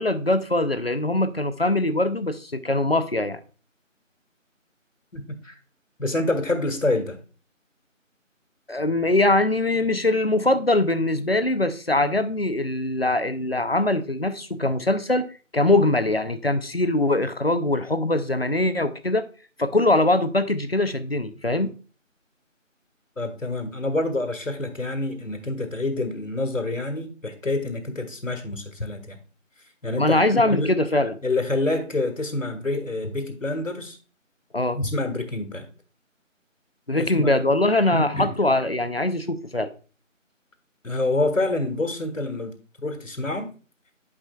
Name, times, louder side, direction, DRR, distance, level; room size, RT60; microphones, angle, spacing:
voice 1, 0.0-3.4 8.7-15.3 15.5-19.2 19.6-21.7 30.0-31.2 34.5-34.8 36.9-39.7, left 2 dB, 50° left, 0.6 m, -22 dB
voice 2, 5.1-5.6 6.0-7.2 23.2-29.2 29.8-30.7 31.2-34.0 34.8-35.7 37.0-37.3 37.9-38.3 40.8-42.5 42.8-43.5, left 2 dB, 75° left, 1.6 m, -27 dB
11.5 x 5.0 x 2.3 m
figure-of-eight pair, 175°, 39 cm